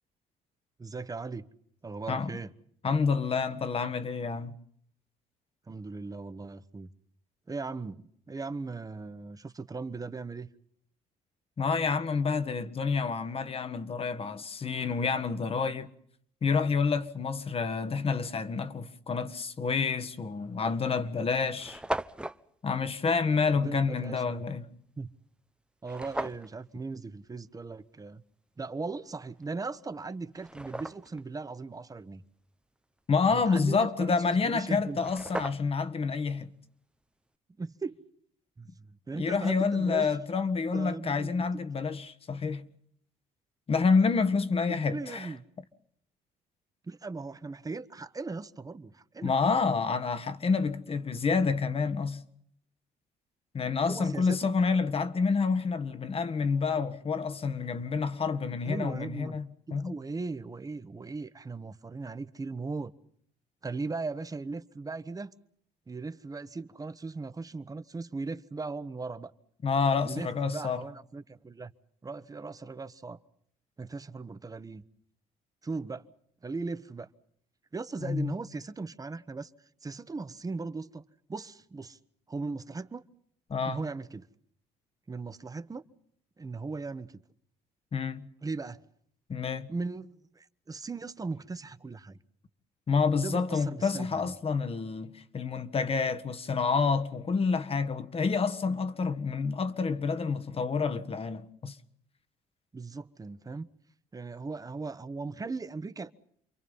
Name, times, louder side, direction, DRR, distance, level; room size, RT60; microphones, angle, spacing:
voice 1, 0.8-1.5 1.8-2.5 5.7-6.9 7.5-10.5 23.5-24.4 25.0-25.1 25.8-28.2 28.6-32.2 33.3-35.0 37.6-38.0 38.6-40.1 40.7-41.6 44.7-45.4 46.8-49.3 53.9-54.5 58.6-59.4 59.7-62.9 63.6-65.3 65.9-69.3 70.0-71.7 72.0-73.2 73.8-74.8 75.6-76.0 76.4-77.1 77.7-79.5 79.8-82.0 82.3-83.0 83.6-84.3 85.1-85.8 86.4-87.2 88.4-88.8 89.7-92.2 93.2-94.3 102.7-103.7 104.1-106.1, right 3 dB, 25° right, 1.3 m, -38 dB
voice 2, 2.8-4.5 11.6-15.9 16.4-21.8 22.6-24.7 33.1-36.5 39.1-42.6 43.7-45.3 49.2-52.2 53.5-59.9 69.6-70.8 78.0-78.3 83.5-83.8 87.9-88.3 89.3-89.7 92.9-101.8, left 5 dB, 40° left, 1.7 m, -28 dB
sound 1, 20.0-20.2 20.9-21.0 21.2-21.3 21.5-22.4 25.8-26.5 29.4-29.5 30.1-31.2 34.6-34.7 34.9-35.9, right 1 dB, 5° right, 0.8 m, -37 dB
28.5 x 23.0 x 5.6 m
supercardioid pair, 80°, 16 cm